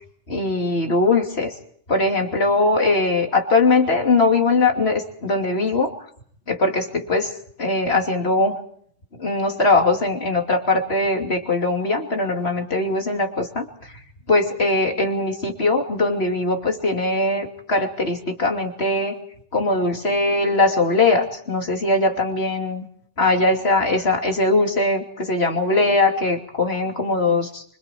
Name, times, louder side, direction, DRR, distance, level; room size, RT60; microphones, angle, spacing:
voice 1, 0.3-1.5 1.9-5.9 6.5-7.3 7.6-8.6 9.2-13.9 14.3-19.2 19.5-22.9 23.2-27.6, left 2 dB, 60° left, 2 dB, 3.2 m, -21 dB
26.0 x 25.5 x 4.6 m, 0.62 s
omnidirectional pair, 1.2 m